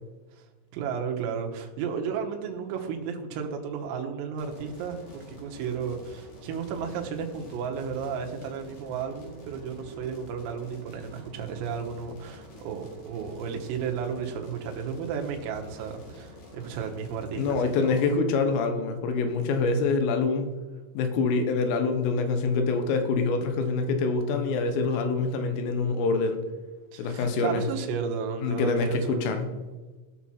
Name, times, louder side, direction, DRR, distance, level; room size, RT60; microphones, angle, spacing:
voice 1, 0.7-18.1 26.9-29.3, right 6 dB, 85° right, 3 dB, 3.9 m, -33 dB
sound 1, 4.4-18.1, equal, 55° left, 5.7 m, -48 dB
voice 2, 17.4-20.5 21.0-26.4 27.0-27.7 28.4-29.5, left 4 dB, 80° left, 7 dB, 3.6 m, -25 dB
17.0 x 6.2 x 4.3 m, 1.3 s
omnidirectional pair, 5.9 m